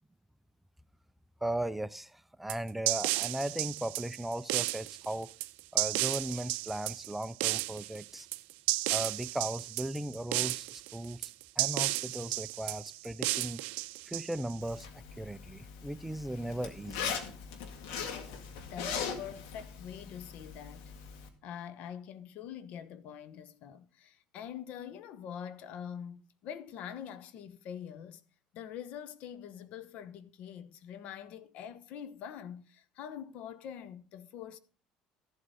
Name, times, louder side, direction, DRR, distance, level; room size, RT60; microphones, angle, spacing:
voice 1, 1.4-5.3 5.7-8.3 8.9-11.3 11.6-13.6 14.1-17.1, right 1 dB, 5° right, 0.4 m, -37 dB
sound 1, 2.5-14.7, right 22 dB, 75° right, 0.4 m, -33 dB
Zipper (clothing), 14.6-21.3, left 6 dB, 85° left, 1.9 m, -40 dB
voice 2, 18.7-20.9 21.4-28.2 28.5-34.6, left 9 dB, 65° left, 1.0 m, -44 dB
14.0 x 7.9 x 4.1 m
supercardioid pair, 105°, 3 cm